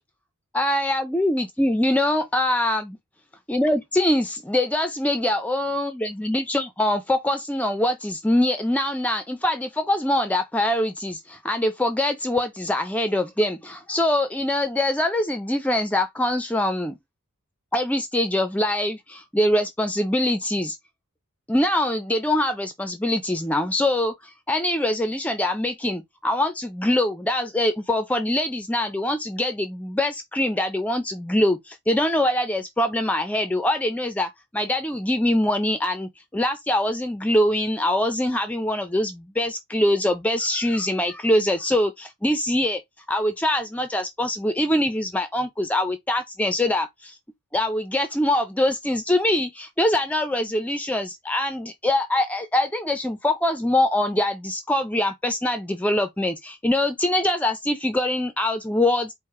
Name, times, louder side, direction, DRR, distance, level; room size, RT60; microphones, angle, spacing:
voice 1, 0.5-3.0 3.5-17.0 17.7-20.8 21.5-42.8 43.1-47.2 47.5-59.1, left 1 dB, 5° left, 0.4 m, -23 dB
4.7 x 2.0 x 4.5 m
head